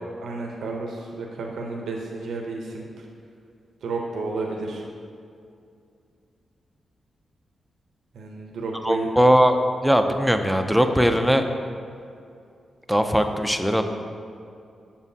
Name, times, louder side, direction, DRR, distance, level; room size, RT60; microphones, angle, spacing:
voice 1, 0.2-3.0 3.8-4.8 8.1-9.1, right 3 dB, 90° right, 0 dB, 0.7 m, -31 dB
voice 2, 8.8-11.4 12.9-13.8, equal, ahead, 6 dB, 0.4 m, -20 dB
7.2 x 7.1 x 2.7 m, 2.5 s
wide cardioid pair, 125°, 0 cm